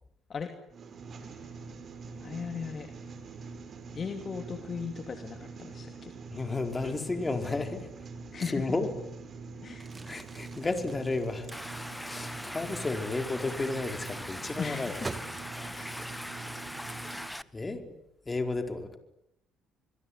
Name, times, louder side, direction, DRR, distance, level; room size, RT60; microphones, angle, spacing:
sound 1, 0.7-17.3, right 4 dB, 50° right, 5.4 m, -44 dB
voice 1, 2.2-2.9 3.9-6.1 8.3-8.7 9.6-9.9 14.6-15.0 15.7-15.9, left 6 dB, 45° left, 6 dB, 2.8 m, -37 dB
voice 2, 6.3-7.9 8.4-8.9 10.0-11.5 12.0-15.0 17.5-17.9 18.2-19.0, left 3 dB, 25° left, 6 dB, 4.8 m, -32 dB
Crumpling crinkling, 9.7-15.9, right 3 dB, 25° right, 2.7 m, -47 dB
Stream, 11.5-17.4, left 1 dB, 5° left, 1.1 m, -41 dB
26.5 x 22.0 x 9.9 m, 0.80 s
supercardioid pair, 65°, 0 cm